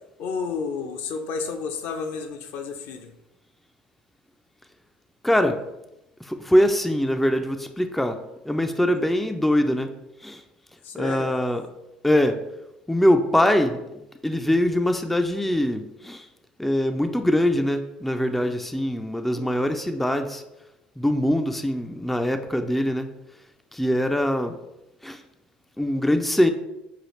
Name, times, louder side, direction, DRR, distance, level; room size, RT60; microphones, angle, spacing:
voice 1, 0.2-3.1 8.8-9.0 10.8-11.3 19.3-19.8, left 5 dB, 60° left, 5 dB, 0.5 m, -32 dB
voice 2, 5.2-5.6 6.3-8.2 8.5-9.9 10.2-10.4 10.9-11.6 12.0-12.4 12.9-13.8 14.2-16.2 16.6-20.4 21.0-23.1 23.7-24.6 25.0-25.2 25.8-26.5, left 1 dB, 5° left, 7 dB, 0.3 m, -22 dB
5.7 x 2.4 x 3.1 m, 0.92 s
hypercardioid pair, 65°, 4 cm